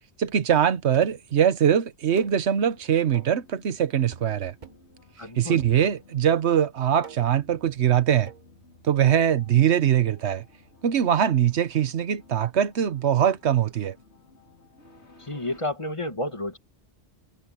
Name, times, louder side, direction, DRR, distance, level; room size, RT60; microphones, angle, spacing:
voice 1, 0.2-4.5 5.4-8.3 8.8-10.4 10.8-14.0, right 9 dB, 90° right, 1.2 m, -22 dB
sound 1, 0.9-1.3 2.2-2.4 3.1-3.4 4.1-4.4 4.6-4.9 5.6-6.2 7.0-7.4 8.3-8.5, right 6 dB, 45° right, 1.2 m, -46 dB
sound 2, 2.5-15.6, left 4 dB, 90° left, 4.4 m, -56 dB
voice 2, 5.2-5.6 15.2-16.6, left 1 dB, 30° left, 2.2 m, -31 dB
Bass guitar, 7.2-13.4, left 1 dB, 70° left, 7.3 m, -60 dB
omnidirectional pair, 1.1 m